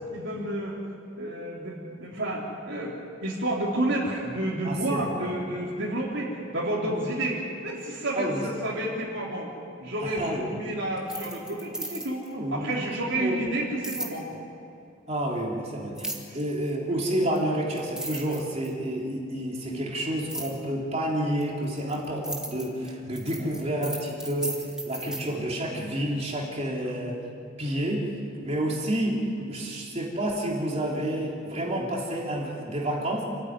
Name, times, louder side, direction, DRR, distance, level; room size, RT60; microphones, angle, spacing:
voice 1, 0.1-0.8 1.2-9.5 9.8-12.2 12.5-14.4 16.3-16.4 21.8-22.0 29.4-29.5 31.8-31.9, right 1 dB, 65° right, -6 dB, 3.5 m, -30 dB
voice 2, 4.6-5.4 6.9-7.1 8.1-8.4 10.0-10.7 12.3-12.7 13.2-13.4 15.1-27.2 27.6-28.1 28.4-29.2 29.5-33.2, right 1 dB, 30° right, -2 dB, 3.3 m, -29 dB
sound 1, 11.0-12.3 13.8-14.2 16.0-16.4 17.4-17.5 17.8-18.9 20.3-20.6 21.4-25.2, right 1 dB, 5° right, 2.2 m, -36 dB
28.5 x 14.5 x 9.7 m, 2.7 s
head